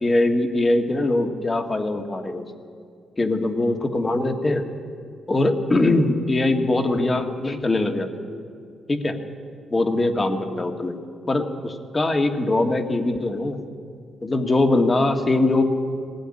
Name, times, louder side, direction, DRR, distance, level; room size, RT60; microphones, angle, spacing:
voice 1, 0.0-2.4 3.2-4.7 5.3-8.1 8.9-9.2 9.7-11.0 11.3-13.6 14.2-15.6, left 2 dB, 25° left, 6 dB, 1.8 m, -22 dB
20.0 x 16.5 x 9.8 m, 2.2 s
cardioid pair, 120°, 0 cm